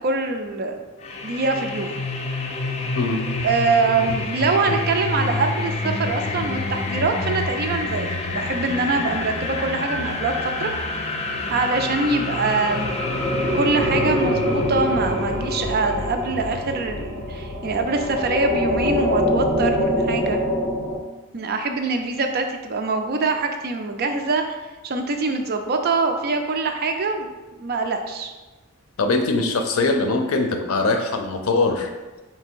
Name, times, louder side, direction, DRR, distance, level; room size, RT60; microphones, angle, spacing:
voice 1, 0.0-0.8 1.2-2.0 3.4-10.7 11.5-13.0 13.5-20.4 21.3-24.4 24.8-28.3, right 3 dB, 50° right, 5 dB, 0.4 m, -24 dB
sound 1, 1.0-18.9, left 3 dB, 30° left, 0.4 m, -29 dB
sound 2, 12.1-21.0, left 1 dB, 50° left, 1.1 m, -25 dB
voice 2, 29.0-31.9, left 3 dB, 90° left, 5 dB, 0.5 m, -22 dB
3.3 x 2.8 x 4.4 m, 1.2 s
head